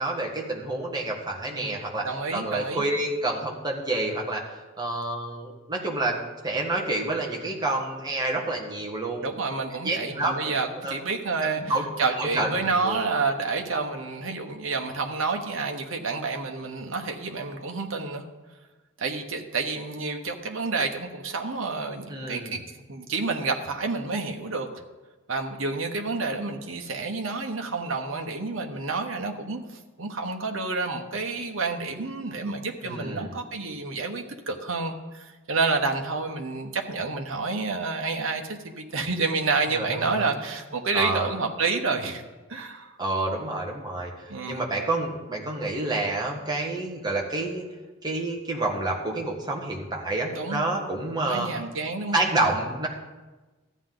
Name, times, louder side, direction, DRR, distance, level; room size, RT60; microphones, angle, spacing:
voice 1, 0.0-2.1 2.3-4.4 4.8-9.3 9.8-10.9 11.6-11.9 12.2-12.5 12.8-13.0 22.1-22.6 32.8-33.4 39.7-40.2 40.9-41.3 43.0-44.1 44.5-47.6 48.0-51.5 52.1-52.9, right 2 dB, 20° right, -1 dB, 1.5 m, -28 dB
voice 2, 2.0-2.8 9.2-18.2 19.0-22.6 22.9-24.7 25.3-29.6 30.0-42.2 42.5-42.9 44.3-44.6 50.3-50.6 51.3-52.2, right 4 dB, 70° right, 4 dB, 1.1 m, -29 dB
13.5 x 9.2 x 3.9 m, 1.2 s
head